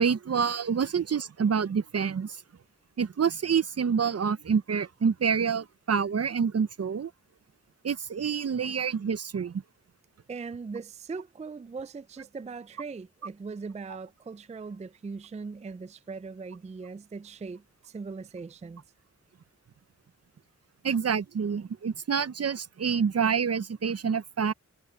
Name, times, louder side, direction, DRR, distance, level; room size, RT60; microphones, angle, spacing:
voice 1, 0.0-2.4 3.0-7.1 7.8-9.6 20.8-24.5, right 6 dB, 55° right, 0.7 m, -27 dB
voice 2, 10.3-18.8, right 4 dB, 25° right, 0.4 m, -40 dB
wide cardioid pair, 65°, 29 cm